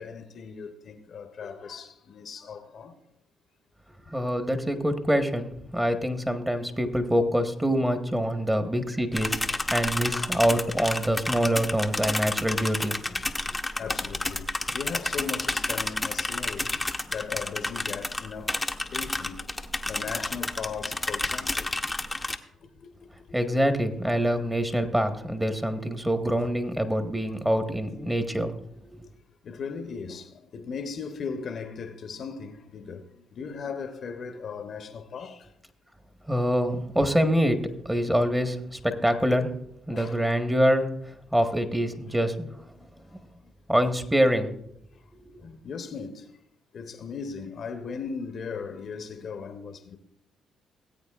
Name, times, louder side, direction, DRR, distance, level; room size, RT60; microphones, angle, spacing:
voice 1, 0.0-2.9 4.8-4.9 9.7-10.5 13.8-18.6 18.9-19.4 19.8-21.7 22.6-22.9 23.3-23.4 29.4-35.5 39.9-40.2 42.6-42.9 45.4-46.3 46.7-50.0, left 5 dB, 55° left, 0.9 m, -38 dB
voice 2, 4.1-13.1 23.3-28.5 28.9-29.1 36.3-39.5 39.9-40.9 41.3-42.5 43.7-44.5, equal, 10° right, 1.3 m, -25 dB
sound 1, 9.1-22.4, left 2 dB, 15° left, 0.8 m, -31 dB
18.5 x 8.5 x 2.4 m
hypercardioid pair, 55°, 0 cm